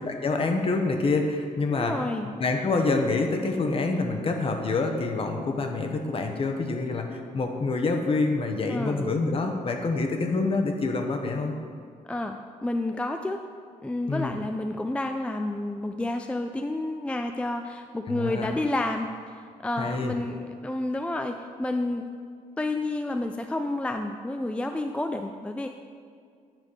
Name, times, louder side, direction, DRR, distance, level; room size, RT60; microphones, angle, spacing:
voice 1, 0.0-1.9 2.4-11.5 14.1-14.3 18.1-18.5 19.8-20.1, left 3 dB, 40° left, 4 dB, 0.9 m, -26 dB
voice 2, 1.7-2.3 8.7-9.2 12.1-13.4 13.8-22.1 22.6-25.7, left 2 dB, 10° left, 6 dB, 0.3 m, -30 dB
9.0 x 3.5 x 6.2 m, 2.2 s
cardioid pair, 90°, 14 cm